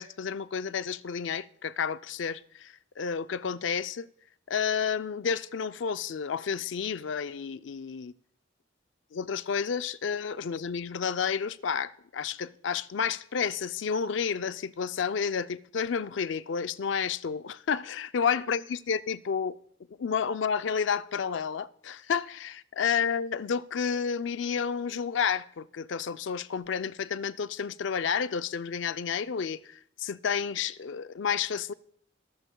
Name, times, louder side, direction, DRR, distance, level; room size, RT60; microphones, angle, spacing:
voice 1, 0.0-4.1 4.5-8.1 9.1-19.6 20.0-31.7, left 6 dB, 70° left, 0.4 m, -31 dB
22.5 x 13.0 x 2.3 m
head